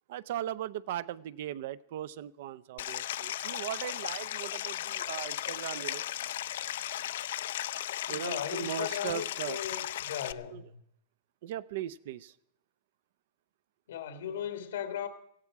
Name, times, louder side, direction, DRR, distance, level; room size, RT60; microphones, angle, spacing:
voice 1, 0.1-6.0 8.1-9.6 10.5-10.6 11.4-12.4, right 12 dB, 55° right, 0.5 m, -38 dB
Stream, 2.8-10.3, left 12 dB, 65° left, 0.5 m, -36 dB
voice 2, 8.1-10.8 13.9-15.1, left 9 dB, 90° left, 1.5 m, -37 dB
17.0 x 15.5 x 4.7 m
supercardioid pair, 170°, 0 cm